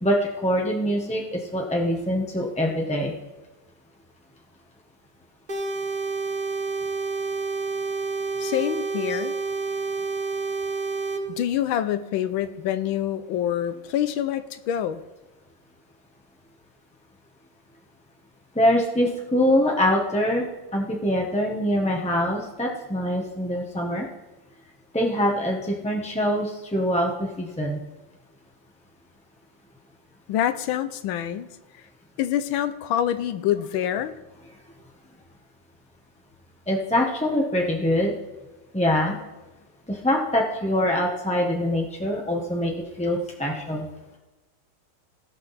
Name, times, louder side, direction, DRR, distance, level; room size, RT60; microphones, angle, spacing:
voice 1, 0.0-3.1 9.1-9.2 18.5-20.5 20.7-24.0 24.9-27.8 36.7-38.1 38.7-39.2 39.9-42.7 43.0-43.9, left 1 dB, 5° left, -1 dB, 0.5 m, -24 dB
sound 1, 5.5-11.2, right 4 dB, 30° right, 1.0 m, -29 dB
voice 2, 8.4-9.3 11.3-15.0 30.3-31.5 32.2-34.1, left 10 dB, 80° left, 12 dB, 1.4 m, -26 dB
17.0 x 5.9 x 4.1 m, 1.1 s
omnidirectional pair, 2.2 m